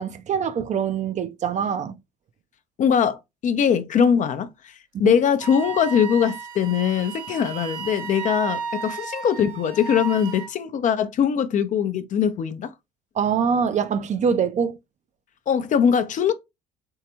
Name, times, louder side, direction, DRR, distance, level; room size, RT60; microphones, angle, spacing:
voice 1, 0.0-2.0 4.9-5.2 13.2-14.8, right 7 dB, 35° right, 0.6 m, -24 dB
voice 2, 2.8-4.7 5.0-12.7 15.5-16.3, left 8 dB, 40° left, 0.6 m, -21 dB
Wind instrument woodwind instrument, 5.4-10.5, right 6 dB, 70° right, 0.8 m, -33 dB
4.6 x 3.3 x 2.8 m
figure-of-eight pair, 55°, 20 cm